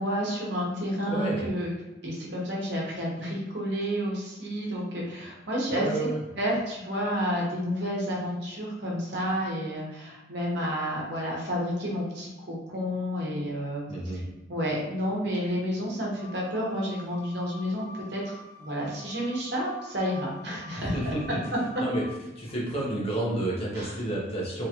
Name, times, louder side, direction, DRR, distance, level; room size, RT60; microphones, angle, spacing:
voice 1, 0.0-1.7 2.0-6.1 6.3-13.8 14.5-21.1 23.7-23.9, equal, 60° right, -3 dB, 1.1 m, -30 dB
voice 2, 1.0-1.5 5.7-6.2 13.9-14.2 20.8-21.4 21.8-22.1 22.3-24.7, right 1 dB, 30° left, -4 dB, 1.1 m, -30 dB
sound 1, 16.2-22.1, left 2 dB, 20° right, 0.8 m, -47 dB
3.7 x 3.2 x 3.0 m, 1.0 s
head